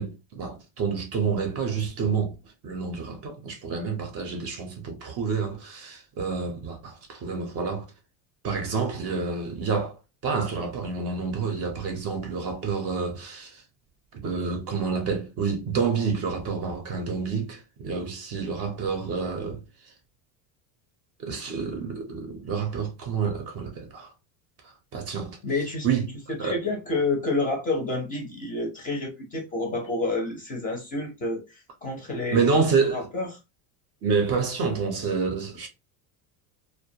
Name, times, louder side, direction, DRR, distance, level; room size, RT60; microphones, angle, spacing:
voice 1, 0.0-7.8 8.4-10.0 10.2-13.6 14.1-19.6 21.2-24.1 24.6-25.4 25.8-26.6 32.3-33.1 34.0-35.7, right 5 dB, 35° right, 0.5 m, -28 dB
voice 2, 25.4-25.9 26.4-32.5 32.8-33.3, left 2 dB, 20° left, 0.5 m, -29 dB
2.3 x 2.1 x 2.6 m
cardioid pair, 155°, 44 cm